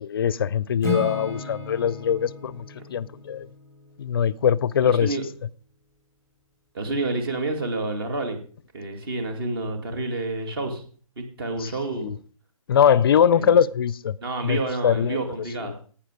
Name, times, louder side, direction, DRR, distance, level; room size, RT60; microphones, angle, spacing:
voice 1, 0.0-3.5 4.0-5.2 11.6-11.7 12.0-12.2 12.7-14.1 14.4-15.2, left 8 dB, 40° left, 0.5 m, -22 dB
Acoustic guitar / Strum, 0.8-4.9, left 1 dB, 15° right, 2.0 m, -35 dB
voice 2, 4.8-5.2 6.7-8.4 8.7-10.8 11.2-12.1 13.3-13.6 14.2-15.8, right 2 dB, 45° right, 2.3 m, -29 dB
11.5 x 8.9 x 5.0 m
hypercardioid pair, 150°, 18 cm